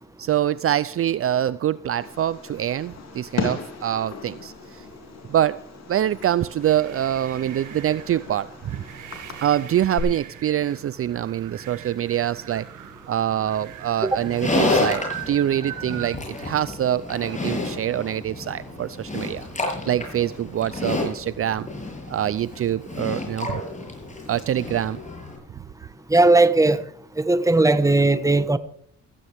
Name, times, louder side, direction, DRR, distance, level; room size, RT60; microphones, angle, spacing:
voice 1, 0.2-4.8 5.3-5.6 5.9-8.8 9.4-12.7 13.1-19.5 19.9-21.7 22.1-23.6 24.3-25.0, right 11 dB, 50° right, 0.5 m, -25 dB
Fireworks, 2.0-10.0, left 6 dB, 60° left, 4.1 m, -37 dB
sound 1, 6.4-16.1, right 11 dB, 80° right, 2.1 m, -41 dB
Livestock farm animals working animals, 14.1-25.4, left 2 dB, 25° left, 7.7 m, -30 dB
voice 2, 26.1-26.8 27.2-28.6, right 2 dB, 10° right, 1.3 m, -17 dB
16.5 x 15.5 x 3.5 m
cardioid pair, 90°, 30 cm